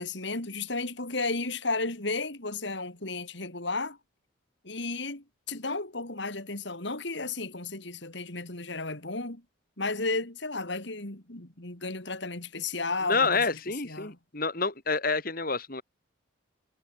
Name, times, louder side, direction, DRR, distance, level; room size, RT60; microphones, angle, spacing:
voice 1, 0.0-4.0 4.6-9.4 9.8-13.6 13.8-14.2, left 3 dB, 60° left, 3.3 m, -33 dB
voice 2, 13.1-15.8, left 4 dB, 45° left, 3.0 m, -28 dB
head